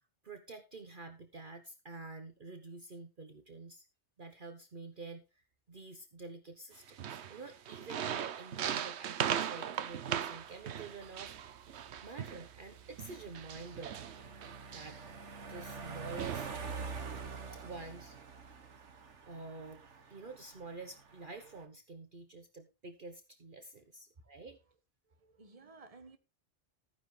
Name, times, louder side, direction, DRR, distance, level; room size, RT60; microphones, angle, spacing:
voice 1, 0.0-3.9 4.2-11.4 12.0-14.0 14.7-15.1 15.5-16.6 17.5-18.2 19.3-19.8 20.1-24.6, right 3 dB, 50° right, 1.2 m, -48 dB
sound 1, 6.9-12.5 13.0-15.1 15.8-15.9 16.2-16.6, right 9 dB, 70° right, 1.0 m, -38 dB
sound 2, 9.9-21.6, right 5 dB, 85° right, 1.7 m, -47 dB
voice 2, 25.1-26.2, right 3 dB, 30° right, 1.4 m, -56 dB
14.0 x 9.8 x 3.3 m
omnidirectional pair, 1.2 m